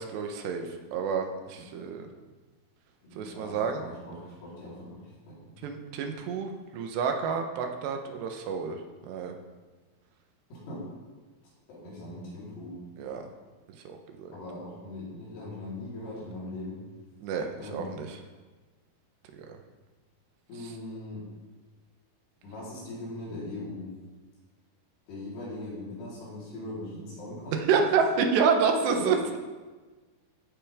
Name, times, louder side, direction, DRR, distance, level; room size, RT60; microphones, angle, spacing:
voice 1, 0.0-2.1 3.2-3.8 5.6-9.4 13.0-13.3 13.8-14.3 17.2-18.2 19.3-19.5 20.6-20.7 27.5-29.4, right 6 dB, 90° right, 4 dB, 3.3 m, -29 dB
voice 2, 3.0-5.5 10.5-10.8 11.7-12.7 14.3-16.8 17.6-17.9 20.5-21.3 22.4-23.9 25.1-27.9 28.7-29.2, left 2 dB, 80° left, -7 dB, 6.0 m, -40 dB
15.0 x 8.9 x 3.6 m, 1.3 s
omnidirectional pair, 4.7 m